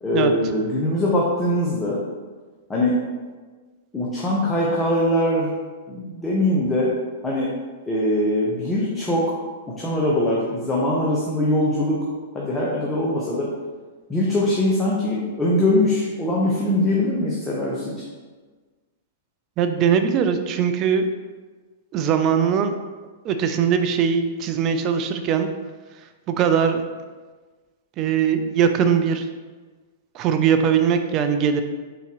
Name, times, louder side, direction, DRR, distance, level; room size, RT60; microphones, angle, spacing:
voice 1, 0.0-2.0 2.7-3.0 3.9-5.5 5.9-6.9 7.2-7.5 7.9-9.3 9.8-12.0 12.3-13.5 14.1-17.9, left 1 dB, 15° left, -6 dB, 0.8 m, -22 dB
voice 2, 19.6-21.1 21.9-22.7 23.2-25.5 26.3-26.8 28.0-29.3 30.1-31.6, right 7 dB, 35° right, 7 dB, 0.4 m, -20 dB
4.0 x 3.8 x 3.0 m, 1.4 s
hypercardioid pair, 110°, 0 cm